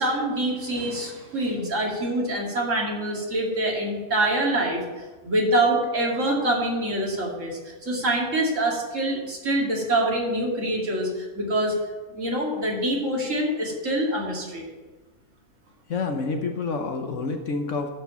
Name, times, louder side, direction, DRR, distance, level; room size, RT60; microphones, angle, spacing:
voice 1, 0.0-4.8 5.2-11.8 12.1-14.6, right 1 dB, 55° right, -2 dB, 2.6 m, -25 dB
voice 2, 15.9-17.9, left 4 dB, 55° left, 5 dB, 1.2 m, -28 dB
11.0 x 5.3 x 7.1 m, 1.2 s
omnidirectional pair, 1.6 m